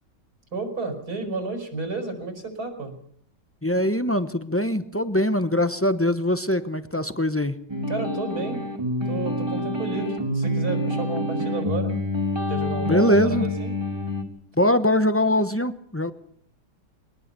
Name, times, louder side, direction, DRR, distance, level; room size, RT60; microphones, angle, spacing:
voice 1, 0.5-3.0 7.9-8.6 9.1-11.9 12.5-13.7, right 3 dB, 60° right, 5 dB, 5.2 m, -31 dB
voice 2, 3.6-7.6 12.9-13.5 14.6-16.1, left 1 dB, 10° left, 10 dB, 0.6 m, -22 dB
sound 1, 7.7-14.2, left 1 dB, 15° right, 2.7 m, -27 dB
22.5 x 19.5 x 6.8 m, 0.65 s
omnidirectional pair, 1.9 m